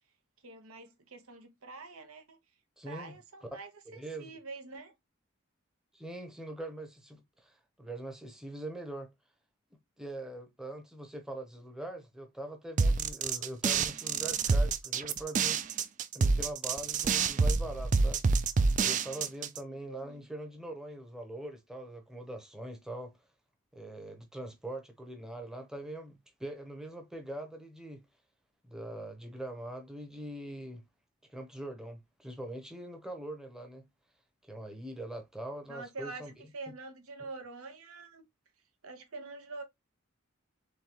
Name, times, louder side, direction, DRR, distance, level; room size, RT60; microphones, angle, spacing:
voice 1, 0.4-2.4 2.9-3.7 4.2-4.9 19.9-20.2 35.7-38.3 38.8-39.6, right 3 dB, 85° right, 1.1 m, -45 dB
voice 2, 2.8-3.1 3.9-4.4 5.9-9.1 10.0-15.6 16.1-18.2 18.8-23.1 23.7-28.0 28.6-30.8 31.3-33.9 34.4-36.3, right 1 dB, 5° right, 0.8 m, -42 dB
sound 1, 12.8-19.6, right 4 dB, 35° right, 0.3 m, -27 dB
3.9 x 3.6 x 2.9 m
head